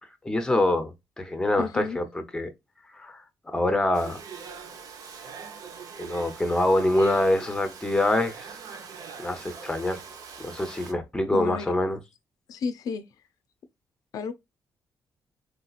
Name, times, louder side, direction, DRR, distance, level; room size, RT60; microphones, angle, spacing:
voice 1, 0.2-2.5 2.9-4.2 6.0-8.5 9.2-10.0 10.4-12.0, left 1 dB, 10° left, 0.6 m, -25 dB
voice 2, 1.6-2.0 11.3-11.7 12.5-13.0 14.1-14.3, left 5 dB, 70° left, 0.4 m, -31 dB
Domestic sounds home sounds, 3.9-10.9, right 6 dB, 70° right, 0.7 m, -42 dB
3.2 x 2.8 x 2.3 m
cardioid pair, 120°, 6 cm